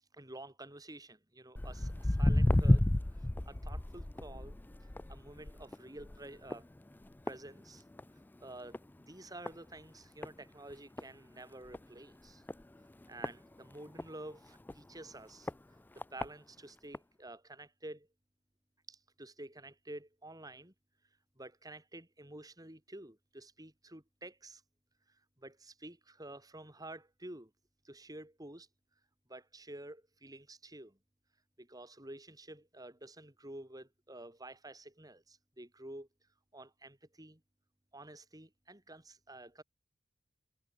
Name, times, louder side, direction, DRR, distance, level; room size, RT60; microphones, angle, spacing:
voice 1, 0.1-2.9 3.1-4.6 5.1-6.7 7.3-7.8 8.4-12.4 13.1-15.5 15.9-18.1 18.9-20.7 21.4-24.6 25.1-27.5 27.8-28.7 29.3-31.0 31.6-36.1 36.5-37.4 37.9-39.6, right 1 dB, 20° right, 5.7 m, -50 dB
Walk footsteps, 1.6-8.2 8.5-8.9 9.5-9.6 10.2-10.3 10.7-10.8 11.0-11.1 11.7-11.8 12.5-14.1 14.7-14.8 15.5-15.6 16.0-16.3 16.9-17.0, left 1 dB, 10° left, 0.3 m, -31 dB
head